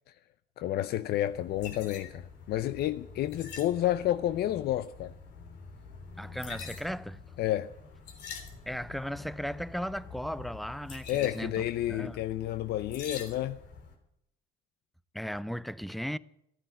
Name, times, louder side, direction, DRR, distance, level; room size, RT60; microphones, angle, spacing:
voice 1, 0.6-5.1 7.4-7.7 11.1-13.6, left 13 dB, 70° left, 0.6 m, -30 dB
sound 1, 1.3-14.0, left 5 dB, 85° left, 3.4 m, -46 dB
voice 2, 6.2-7.2 8.7-12.2 15.1-16.2, equal, ahead, 0.5 m, -36 dB
14.5 x 9.9 x 9.2 m
cardioid pair, 110°, 17 cm